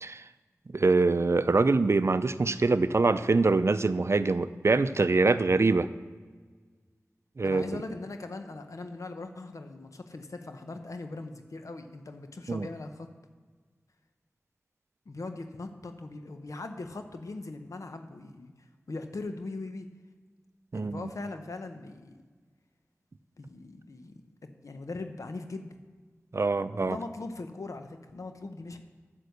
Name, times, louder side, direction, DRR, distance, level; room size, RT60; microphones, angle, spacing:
voice 1, 0.7-5.9 7.4-7.8 12.5-12.7 20.7-21.0 26.3-27.0, right 3 dB, 55° right, 13 dB, 0.5 m, -24 dB
voice 2, 7.4-13.1 15.1-19.9 20.7-22.2 23.4-25.8 26.8-28.8, left 2 dB, 75° left, 7 dB, 0.9 m, -40 dB
9.5 x 7.7 x 6.7 m, 1.4 s
wide cardioid pair, 50°, 6 cm